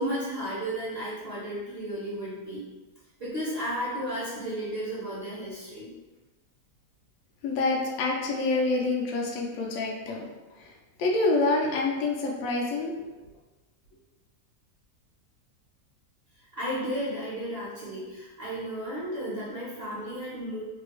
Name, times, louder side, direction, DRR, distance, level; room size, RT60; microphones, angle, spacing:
voice 1, 0.0-2.6 3.2-5.9 16.5-20.6, equal, 45° right, -9 dB, 0.9 m, -33 dB
voice 2, 7.4-10.3 10.6-10.7 11.0-12.9, left 3 dB, 70° left, -1 dB, 0.9 m, -27 dB
3.3 x 2.2 x 3.0 m, 1.2 s
omnidirectional pair, 1.7 m